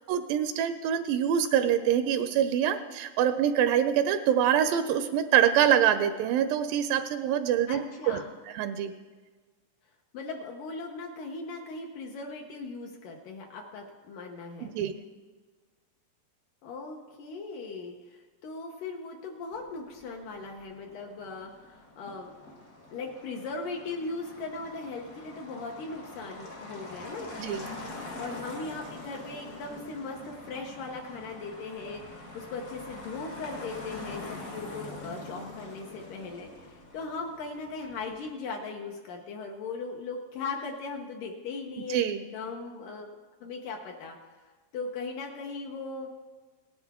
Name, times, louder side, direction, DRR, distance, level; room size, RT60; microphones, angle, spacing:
voice 1, 0.1-7.8 8.1-8.2 8.5-8.9 14.6-14.9 27.4-27.6 41.9-42.2, right 9 dB, 85° right, 9 dB, 2.2 m, -25 dB
voice 2, 7.7-8.3 10.1-14.7 16.6-22.4 22.9-27.3 28.2-42.0 42.3-43.1 43.4-44.2 44.7-46.1, left 3 dB, 75° left, 1 dB, 2.4 m, -38 dB
Motor vehicle (road), 19.5-38.3, left 2 dB, 90° left, 0.7 m, -45 dB
18.0 x 9.7 x 3.6 m, 1.4 s
omnidirectional pair, 4.0 m